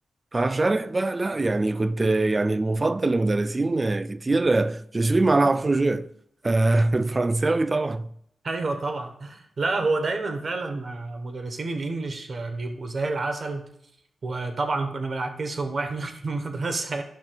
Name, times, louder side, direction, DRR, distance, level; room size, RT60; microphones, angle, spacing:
voice 1, 0.3-6.1 6.4-8.1, right 2 dB, 30° right, 0.4 m, -23 dB
voice 2, 8.4-13.7 14.2-17.0, right 3 dB, 55° right, 1.1 m, -29 dB
11.5 x 5.9 x 2.3 m
cardioid pair, 65°, 0 cm